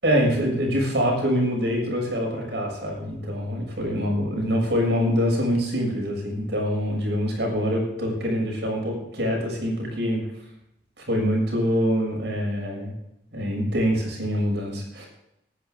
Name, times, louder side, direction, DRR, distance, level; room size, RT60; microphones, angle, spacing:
voice 1, 0.0-10.2 11.0-12.9 13.3-15.1, equal, 70° right, 0 dB, 7.0 m, -25 dB
19.5 x 11.0 x 3.8 m, 0.82 s
head